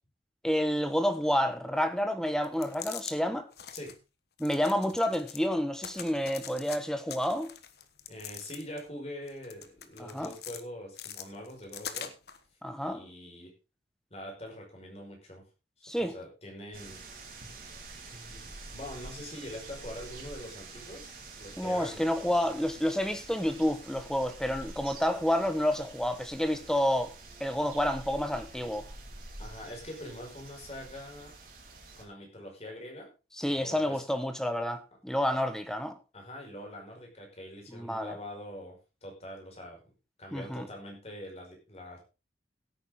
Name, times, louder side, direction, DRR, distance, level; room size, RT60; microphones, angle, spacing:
voice 1, 0.4-3.5 4.4-7.5 10.0-10.3 12.6-13.0 15.8-16.1 21.6-27.1 27.4-28.9 33.4-35.9 37.7-38.2 40.3-40.7, equal, 5° left, 1.2 m, -29 dB
sound 1, 2.4-3.2 3.5-4.0 4.4-5.5 5.8-6.8 7.1-8.9 9.3-10.6 11.0-12.4, left 9 dB, 60° left, 1.2 m, -43 dB
voice 2, 8.1-12.1 12.9-13.5 14.1-15.4 16.0-17.0 18.1-22.0 29.4-31.3 32.0-33.1 33.5-34.0 36.1-39.9 40.2-42.0, left 1 dB, 35° left, 5.0 m, -44 dB
sound 2, 16.7-32.0, right 3 dB, 50° right, 3.5 m, -47 dB
16.0 x 8.9 x 3.7 m
head